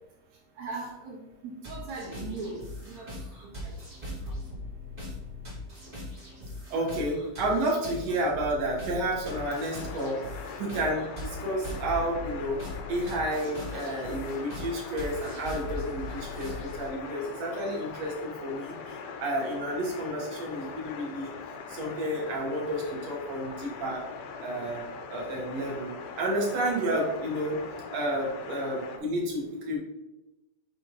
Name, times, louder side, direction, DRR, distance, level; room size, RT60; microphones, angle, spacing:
voice 1, 0.6-2.6 2.8-3.1 3.4-3.7, right 3 dB, 75° right, -4 dB, 1.6 m, -39 dB
sound 1, 1.6-16.9, left 1 dB, 30° right, 0.7 m, -40 dB
voice 2, 6.7-12.6 12.9-21.3 21.7-24.0 24.4-24.8 25.1-27.6 27.9-29.8, right 1 dB, 60° right, -3 dB, 1.9 m, -31 dB
sound 2, 9.2-29.0, left 5 dB, 85° left, 2.6 m, -42 dB
6.4 x 5.5 x 2.7 m, 1.0 s
omnidirectional pair, 4.5 m